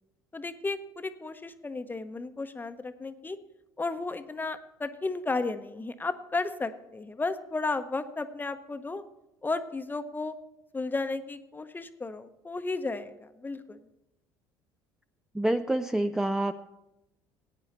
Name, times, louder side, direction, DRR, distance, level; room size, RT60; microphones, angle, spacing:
voice 1, 0.3-3.4 3.8-9.0 9.4-10.4 10.7-13.8, left 3 dB, 20° left, 10 dB, 0.8 m, -33 dB
voice 2, 15.3-16.5, right 1 dB, 5° right, 8 dB, 0.4 m, -27 dB
15.0 x 9.3 x 4.2 m, 0.92 s
hypercardioid pair, 70°, 10 cm